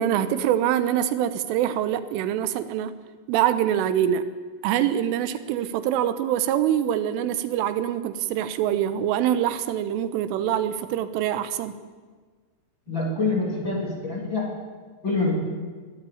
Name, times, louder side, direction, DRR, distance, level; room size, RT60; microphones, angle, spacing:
voice 1, 0.0-3.0 3.3-4.3 4.6-11.7 12.9-13.0, right 10 dB, 85° right, 12 dB, 3.5 m, -24 dB
voice 2, 12.9-14.5 15.0-15.3, left 3 dB, 25° left, -1 dB, 3.4 m, -25 dB
22.0 x 16.0 x 8.6 m, 1.4 s
omnidirectional pair, 5.7 m